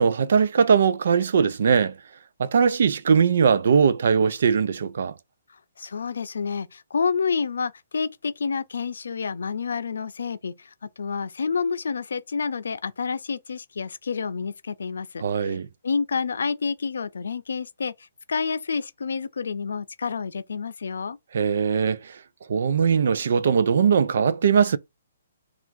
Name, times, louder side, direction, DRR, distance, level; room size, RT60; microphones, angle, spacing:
voice 1, 0.0-2.0 2.4-5.1 15.2-15.7 21.3-22.2 22.5-24.8, right 6 dB, 55° right, 0.4 m, -20 dB
voice 2, 5.8-15.6 15.8-17.9 18.3-21.2, left 5 dB, 85° left, 0.5 m, -29 dB
3.5 x 2.4 x 4.4 m
hypercardioid pair, 175°, 0 cm